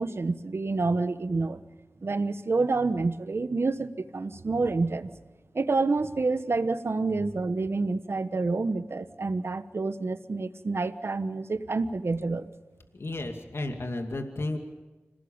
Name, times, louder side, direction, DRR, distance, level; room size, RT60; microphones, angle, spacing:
voice 1, 0.0-1.6 2.0-5.1 5.5-12.5, right 3 dB, 65° right, 12 dB, 1.3 m, -28 dB
voice 2, 12.9-14.6, left 2 dB, 65° left, 5 dB, 2.5 m, -33 dB
26.5 x 18.0 x 8.9 m, 1.2 s
wide cardioid pair, 60°, 5 cm